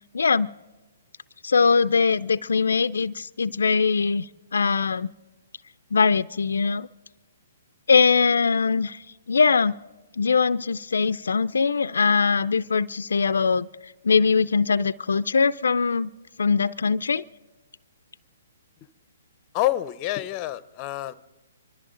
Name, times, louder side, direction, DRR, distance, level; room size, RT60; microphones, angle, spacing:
voice 1, 0.1-0.5 1.4-5.1 5.9-6.9 7.9-9.7 10.2-16.1 16.4-17.2, left 5 dB, 75° left, 0.4 m, -22 dB
voice 2, 19.5-21.1, left 14 dB, 30° left, 0.6 m, -27 dB
25.0 x 13.5 x 3.8 m
hypercardioid pair, 135°, 0 cm